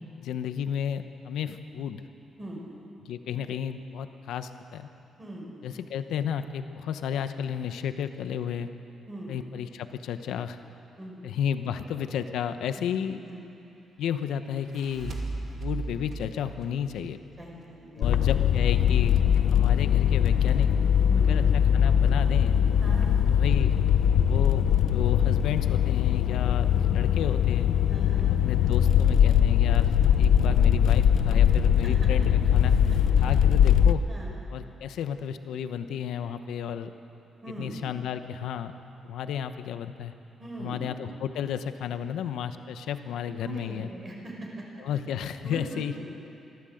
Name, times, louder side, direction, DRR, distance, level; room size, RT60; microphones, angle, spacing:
voice 1, 0.2-2.0 3.0-4.9 5.6-8.7 9.3-10.6 11.2-13.2 14.0-15.2 15.6-17.2 18.0-19.2 19.5-20.9 21.2-22.6 23.3-23.7 24.2-24.6 24.9-27.7 28.3-32.7 33.2-34.0 34.5-36.9 37.6-38.7 39.0-40.1 40.6-43.9 44.8-45.9, left 8 dB, 90° left, 9 dB, 1.0 m, -32 dB
sound 1, 14.5-17.8, right 3 dB, 45° right, 2.4 m, -37 dB
voice 2, 17.4-18.3 21.1-21.4 22.8-23.1 27.9-28.3 31.8-32.1 33.2-33.3 34.1-34.3 37.4-37.7 40.4-40.9 43.4-44.6 45.4-46.0, right 1 dB, 25° right, -2 dB, 5.1 m, -40 dB
sound 2, 18.0-33.9, left 9 dB, 65° left, 0.7 m, -21 dB
24.0 x 14.5 x 7.9 m, 2.7 s
cardioid pair, 160°, 0 cm